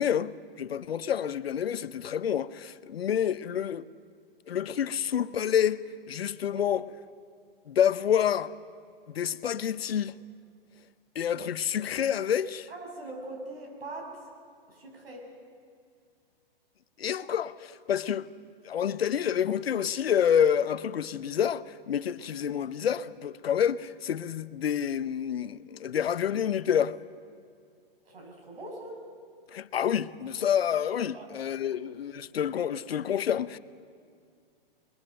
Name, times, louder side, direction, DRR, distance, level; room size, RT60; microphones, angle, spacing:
voice 1, 0.0-3.9 4.5-6.8 7.7-8.5 9.1-10.2 11.2-12.7 17.0-18.3 18.6-27.0 29.5-33.6, left 9 dB, 80° left, 0.8 m, -28 dB
voice 2, 12.7-14.3 14.7-15.3 28.0-29.0 31.1-31.3 31.7-31.8, right 2 dB, 80° right, 6.3 m, -42 dB
23.0 x 21.5 x 6.6 m
hypercardioid pair, 130°, 30 cm